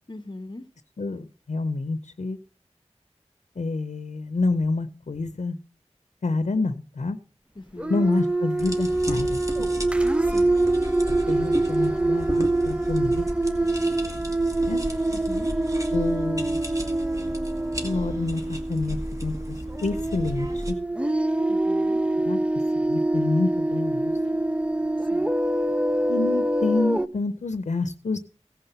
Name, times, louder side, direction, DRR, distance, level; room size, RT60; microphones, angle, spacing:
voice 1, 0.1-0.6 7.5-8.0 10.2-10.5 15.1-15.6 21.5-22.0 25.0-25.3, left 2 dB, 40° left, 0.8 m, -40 dB
voice 2, 1.0-2.4 3.6-5.6 6.2-7.2 7.9-9.7 11.3-13.2 14.7-14.8 15.9-16.7 17.8-20.8 22.2-22.4 22.7-24.1 26.1-28.2, left 3 dB, 90° left, 0.6 m, -28 dB
sound 1, 7.8-27.1, right 2 dB, 10° right, 0.5 m, -25 dB
sound 2, 8.6-20.7, equal, 30° right, 2.1 m, -35 dB
16.5 x 5.7 x 6.7 m
wide cardioid pair, 55°, 12 cm